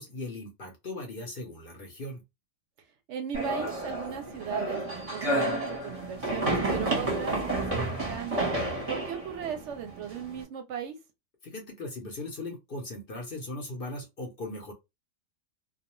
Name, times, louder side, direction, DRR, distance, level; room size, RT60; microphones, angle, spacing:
voice 1, 0.0-2.2 11.4-14.7, left 2 dB, 55° left, 0.7 m, -38 dB
voice 2, 3.1-8.5 8.9-11.0, right 7 dB, 70° right, 0.8 m, -37 dB
sound 1, 3.3-10.4, right 2 dB, 30° right, 0.9 m, -30 dB
2.3 x 2.3 x 2.9 m
omnidirectional pair, 1.4 m